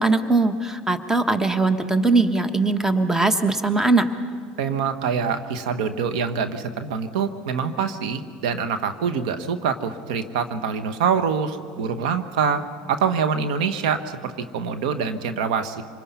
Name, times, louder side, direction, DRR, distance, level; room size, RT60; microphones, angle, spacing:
voice 1, 0.0-4.1, right 3 dB, 10° right, 10 dB, 1.3 m, -20 dB
voice 2, 4.6-12.6 12.9-15.8, right 6 dB, 80° right, 9 dB, 1.2 m, -25 dB
26.0 x 21.0 x 5.7 m, 2.2 s
supercardioid pair, 95°, 4 cm